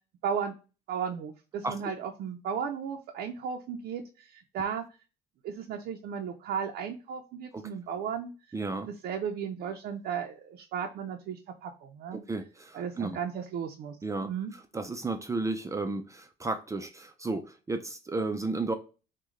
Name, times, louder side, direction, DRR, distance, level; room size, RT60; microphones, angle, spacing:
voice 1, 0.2-0.6 0.9-4.8 5.4-8.6 8.8-12.2 12.7-14.0 14.2-14.5, right 7 dB, 70° right, 3 dB, 0.6 m, -35 dB
voice 2, 8.5-8.9 12.3-13.2 14.0-14.3 14.7-18.7, right 3 dB, 20° right, 7 dB, 0.5 m, -33 dB
6.2 x 2.3 x 3.2 m, 0.33 s
cardioid pair, 110°, 17 cm